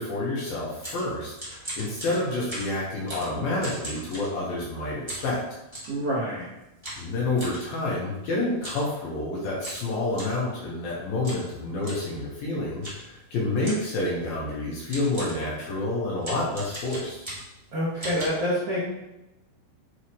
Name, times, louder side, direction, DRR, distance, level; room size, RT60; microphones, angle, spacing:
voice 1, 0.0-5.4 7.0-17.2, left 2 dB, 65° left, -5 dB, 2.7 m, -29 dB
sound 1, 0.5-4.7 5.1-6.0 6.8-7.6 8.5-8.9 9.2-9.3 9.6-10.4 11.2-11.5 11.8-12.1 12.8-13.1 13.6-14.0 14.6-14.7 14.9-15.5 16.2-17.6 18.0-18.2, right 1 dB, 35° right, 0.4 m, -38 dB
voice 2, 5.9-6.5 17.7-18.8, equal, 75° right, -8 dB, 1.3 m, -27 dB
10.0 x 4.7 x 3.2 m, 0.93 s
omnidirectional pair, 5.7 m